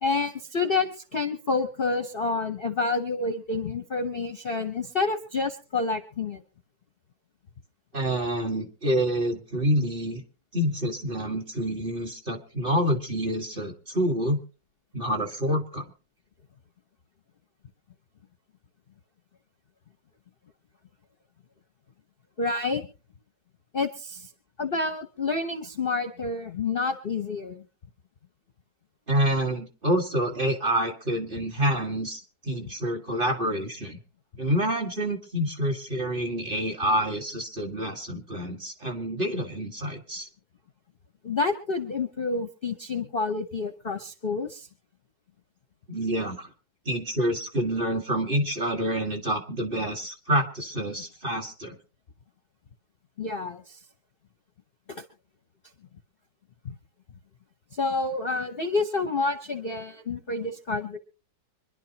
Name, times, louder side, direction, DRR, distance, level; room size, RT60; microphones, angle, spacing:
voice 1, 0.0-6.4 22.4-22.9 23.7-24.3 24.6-27.6 41.2-44.7 51.0-51.1 53.2-53.8 54.9-55.0 56.6-56.8 57.7-61.0, left 3 dB, 40° left, 7 dB, 0.9 m, -28 dB
voice 2, 7.9-10.2 10.5-14.4 14.9-15.9 29.1-34.0 34.4-40.3 45.9-46.5 46.9-51.8, equal, 30° right, 2 dB, 1.7 m, -27 dB
25.5 x 11.0 x 2.9 m, 0.35 s
omnidirectional pair, 2.0 m